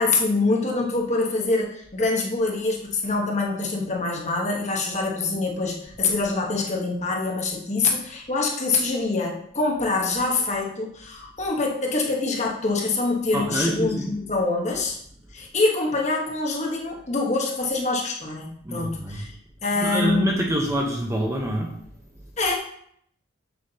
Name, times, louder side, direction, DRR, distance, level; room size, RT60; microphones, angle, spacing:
voice 1, 0.0-15.0 15.3-19.3 19.6-20.3 22.4-22.6, left 3 dB, 35° left, -1 dB, 1.2 m, -25 dB
voice 2, 13.3-14.1 18.6-19.2 19.8-21.8, right 1 dB, 15° right, -1 dB, 0.9 m, -26 dB
7.3 x 6.8 x 2.8 m, 0.67 s
head